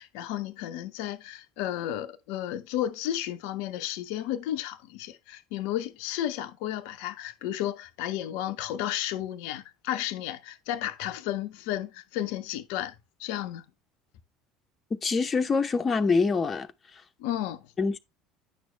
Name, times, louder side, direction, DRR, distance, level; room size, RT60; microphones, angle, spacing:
voice 1, 0.0-12.9 13.2-13.6 17.2-17.7, left 12 dB, 60° left, 0.6 m, -33 dB
voice 2, 15.0-16.7 17.8-18.0, left 4 dB, 25° left, 0.8 m, -25 dB
9.9 x 6.2 x 3.3 m
figure-of-eight pair, 65°, 0 cm